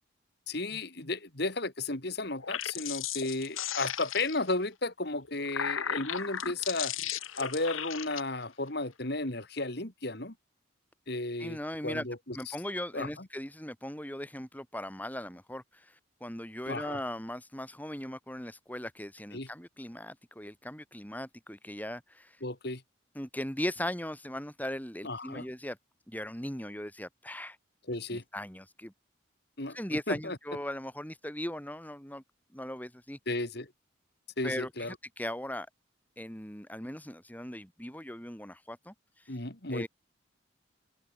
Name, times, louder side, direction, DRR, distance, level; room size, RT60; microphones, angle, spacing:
voice 1, 0.5-6.9 7.4-10.3 11.1-11.6 11.8-12.6 12.9-13.1 16.7-17.0 19.3-19.5 22.4-22.8 25.0-25.5 27.9-28.2 29.6-29.8 30.1-30.4 33.3-33.7 34.4-34.9 39.3-39.9, left 2 dB, 55° left, 3.0 m, -34 dB
sound 1, 2.3-4.5 5.2-8.2, left 9 dB, 90° left, 2.3 m, -36 dB
voice 2, 11.4-12.1 12.3-22.4 23.2-25.8 26.1-27.6 28.1-28.9 29.7-32.2 32.5-33.2 34.4-35.7 36.2-39.4 39.7-39.9, left 1 dB, 10° left, 5.5 m, -39 dB
open air
head